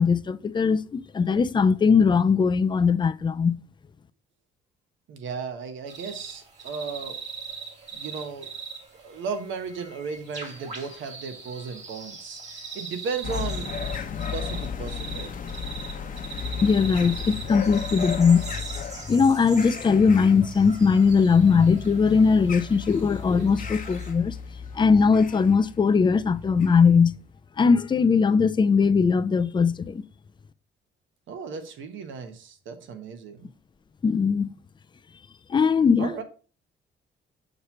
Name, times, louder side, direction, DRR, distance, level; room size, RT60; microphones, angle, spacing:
voice 1, 0.0-3.6 16.6-18.4 19.1-24.4 24.7-27.1 27.6-30.0 34.0-34.5 35.5-36.2, left 5 dB, 25° left, 0.4 m, -20 dB
voice 2, 5.1-7.2 7.9-8.5 8.9-13.7 14.3-15.3 31.3-33.5 36.0-36.2, right 5 dB, 75° right, 1.2 m, -35 dB
sound 1, 5.9-24.1, right 5 dB, 35° right, 2.1 m, -41 dB
sound 2, 13.2-27.0, left 7 dB, 45° left, 0.9 m, -35 dB
6.6 x 3.0 x 5.5 m
cardioid pair, 90°, 20 cm